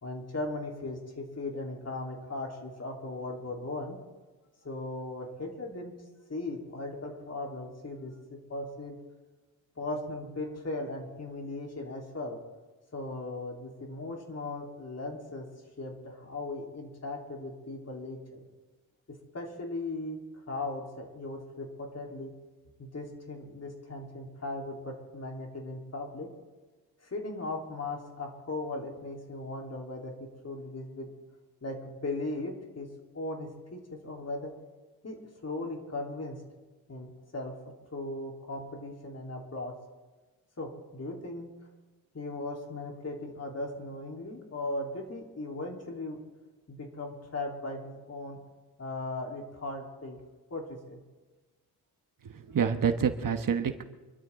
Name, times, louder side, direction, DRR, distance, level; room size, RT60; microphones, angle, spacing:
voice 1, 0.0-4.0 4.6-5.9 6.3-9.0 9.8-12.4 12.9-15.5 15.8-18.5 19.3-20.2 20.5-22.3 22.8-26.3 27.0-31.1 31.6-32.9 33.1-34.5 35.0-36.4 36.9-37.5 37.9-39.7 40.6-41.5 42.1-46.2 46.7-48.4 48.8-50.2 50.5-51.0, left 2 dB, 45° left, 0 dB, 3.6 m, -38 dB
voice 2, 52.2-53.8, right 7 dB, 60° right, 7 dB, 1.2 m, -28 dB
25.5 x 12.5 x 3.8 m, 1.2 s
cardioid pair, 85°, 37 cm